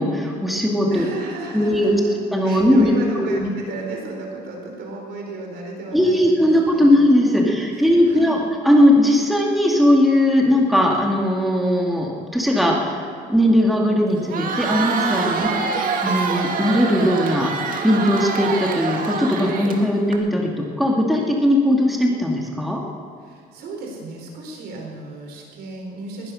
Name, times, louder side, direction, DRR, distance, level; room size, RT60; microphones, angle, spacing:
voice 1, 0.0-1.1 1.5-2.0 2.3-3.5 5.9-8.4 8.6-13.0 13.3-15.5 16.0-17.5 17.8-20.5 20.8-22.8, left 1 dB, ahead, -1 dB, 2.2 m, -18 dB
voice 2, 0.9-2.1 2.4-8.4 15.2-15.5 23.2-26.3, right 2 dB, 75° right, 0 dB, 4.3 m, -35 dB
Crowd, 14.2-20.2, right 5 dB, 55° right, 1.9 m, -25 dB
20.5 x 10.0 x 6.4 m, 2.3 s
cardioid pair, 110°, 17 cm